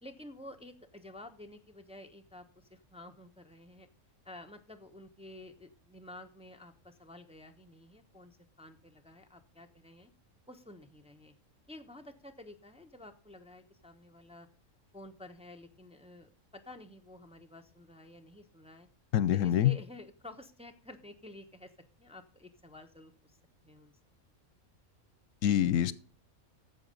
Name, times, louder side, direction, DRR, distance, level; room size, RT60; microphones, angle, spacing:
voice 1, 0.0-3.9 4.2-10.1 10.5-11.3 11.7-14.5 14.9-18.9 19.3-21.7 22.0-23.3 23.6-23.9, left 1 dB, 5° right, 5 dB, 0.9 m, -51 dB
voice 2, 19.1-19.7 25.4-25.9, left 11 dB, 75° left, 18 dB, 1.0 m, -25 dB
10.5 x 7.4 x 5.2 m, 0.39 s
omnidirectional pair, 1.4 m